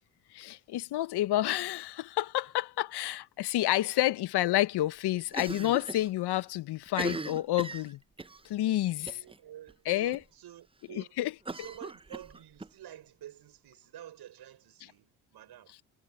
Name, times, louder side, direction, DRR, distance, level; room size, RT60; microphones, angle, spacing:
voice 1, 0.3-8.0 8.4-9.1 9.8-10.2 10.9-11.3, left 15 dB, 60° left, 1.5 m, -29 dB
Cough, 5.3-6.1 6.4-6.5 6.9-8.4 9.1-9.4 9.7-9.8 10.1-10.2 11.4-12.7, right 3 dB, 10° right, 0.9 m, -39 dB
voice 2, 8.6-11.2 11.5-15.7, right 12 dB, 60° right, 5.9 m, -50 dB
hypercardioid pair, 55°, 44 cm